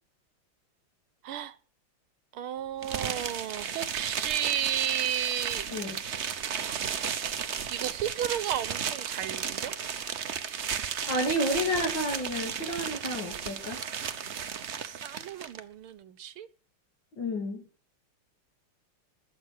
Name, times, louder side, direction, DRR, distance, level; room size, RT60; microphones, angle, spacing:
voice 1, 1.2-1.6 2.3-5.7 6.5-6.8 7.7-9.7 14.7-16.5, right 10 dB, 75° right, 1.7 m, -33 dB
sound 1, 2.8-15.6, right 7 dB, 50° right, 0.8 m, -34 dB
voice 2, 11.1-13.8 17.2-17.6, equal, 55° left, 3.4 m, -30 dB
20.5 x 7.4 x 6.5 m
omnidirectional pair, 2.4 m